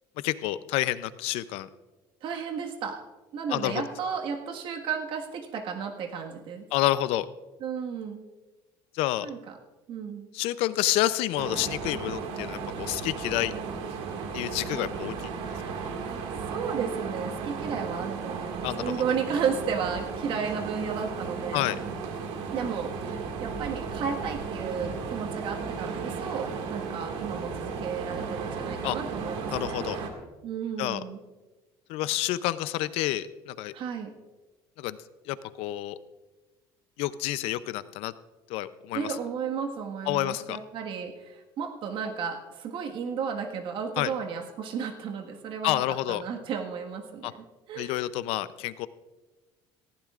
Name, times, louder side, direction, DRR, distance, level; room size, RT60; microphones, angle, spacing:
voice 1, 0.2-1.7 3.5-3.8 6.7-7.3 8.9-9.3 10.3-13.5 14.3-15.3 18.6-18.9 21.5-21.8 28.8-29.0 29.5-30.0 30.8-31.0 31.9-33.7 34.8-35.0 35.3-36.0 37.0-38.1 38.5-39.1 40.1-40.6 44.0-44.1 45.6-46.2 47.2-47.3 47.8-48.9, left 15 dB, 75° left, 15 dB, 0.6 m, -29 dB
voice 2, 2.2-3.0 3.3-6.7 7.6-8.2 9.2-9.6 9.9-10.3 16.5-21.7 22.5-29.9 30.4-31.2 33.7-34.2 38.9-48.0, right 6 dB, 60° right, 3 dB, 1.7 m, -33 dB
sound 1, 11.4-30.1, right 5 dB, 75° right, 2.1 m, -35 dB
18.5 x 15.0 x 2.5 m, 1.2 s
cardioid pair, 125°, 10 cm